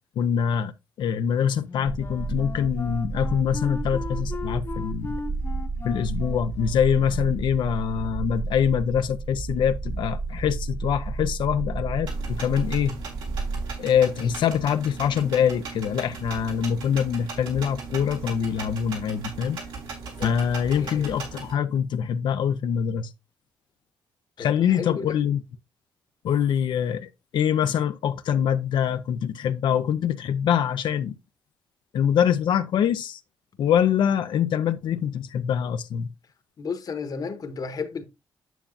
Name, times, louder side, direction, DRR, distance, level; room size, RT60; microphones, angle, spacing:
voice 1, 0.2-0.7 1.0-5.2 5.8-13.0 13.8-19.6 20.2-23.1 24.4-25.4 26.2-31.1 31.9-33.2 33.6-36.1, left 8 dB, 75° left, 0.7 m, -24 dB
Wind instrument woodwind instrument, 1.6-7.5, left 4 dB, 35° left, 1.0 m, -38 dB
sound 1, 1.9-13.8, right 3 dB, 15° right, 0.5 m, -32 dB
sound 2, 12.1-21.5, right 4 dB, 85° right, 3.9 m, -38 dB
voice 2, 20.7-21.1 24.4-25.2 36.6-38.0, left 5 dB, 50° left, 1.3 m, -33 dB
9.2 x 7.1 x 2.6 m
cardioid pair, 75°, 8 cm